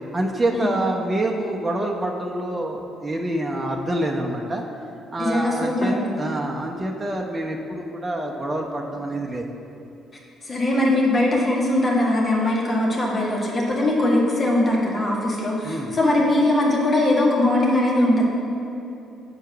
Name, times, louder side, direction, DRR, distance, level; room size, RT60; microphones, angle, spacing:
voice 1, 0.1-4.6 5.1-9.4 15.6-15.9, right 1 dB, 25° right, 0 dB, 0.8 m, -26 dB
voice 2, 5.2-6.1 10.4-18.3, left 1 dB, 35° left, -3 dB, 1.8 m, -21 dB
7.7 x 4.6 x 6.1 m, 2.8 s
figure-of-eight pair, 45°, 0 cm